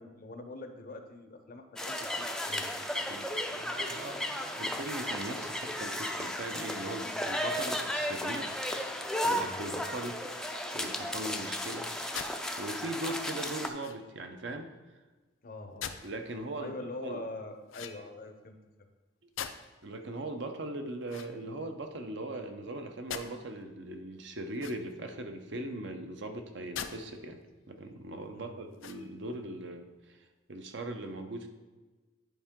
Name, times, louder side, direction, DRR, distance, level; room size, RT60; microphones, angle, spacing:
voice 1, 0.0-2.7 9.4-9.7 15.4-16.0 16.6-18.6 28.3-28.6, left 2 dB, 45° left, 7 dB, 0.7 m, -43 dB
sound 1, 1.8-13.7, left 1 dB, 5° left, 0.4 m, -34 dB
voice 2, 3.1-8.5 9.2-10.2 10.7-11.9 12.6-14.7 16.0-16.7 17.0-17.2 19.8-27.4 27.7-30.2 30.5-31.5, right 1 dB, 60° right, 5 dB, 0.7 m, -39 dB
sound 2, 12.1-12.4 13.8-14.2 15.8-16.1 17.7-18.3 19.4-19.8 21.0-21.9 23.1-23.3 24.5-25.1 26.7-27.0 27.5-27.6 28.7-29.3, left 8 dB, 85° left, 0.5 m, -42 dB
10.0 x 4.5 x 3.7 m, 1.3 s
head